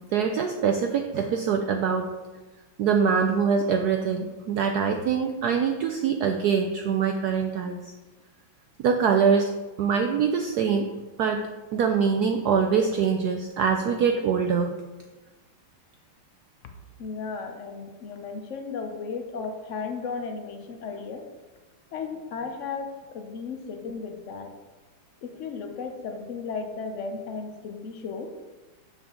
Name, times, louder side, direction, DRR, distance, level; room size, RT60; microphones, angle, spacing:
voice 1, 0.1-2.1 2.8-7.9 8.8-9.5 9.8-10.9 11.2-11.4 11.7-14.7, right 6 dB, 75° right, 5 dB, 0.9 m, -24 dB
voice 2, 17.0-21.2 21.9-24.5 25.2-28.3, left 5 dB, 75° left, 5 dB, 0.6 m, -35 dB
7.2 x 6.9 x 3.7 m, 1.2 s
omnidirectional pair, 2.2 m